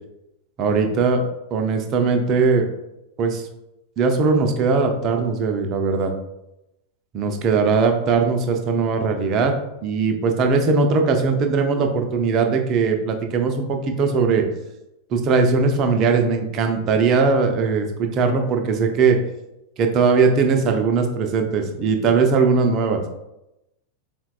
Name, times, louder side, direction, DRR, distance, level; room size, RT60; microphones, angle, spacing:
voice 1, 0.6-1.2 1.5-2.7 3.2-3.5 4.0-6.1 7.1-9.5 9.8-14.5 15.1-19.2 19.8-23.0, right 4 dB, 35° right, 4 dB, 0.4 m, -19 dB
3.9 x 2.2 x 2.2 m, 0.89 s
figure-of-eight pair, 90°, 0 cm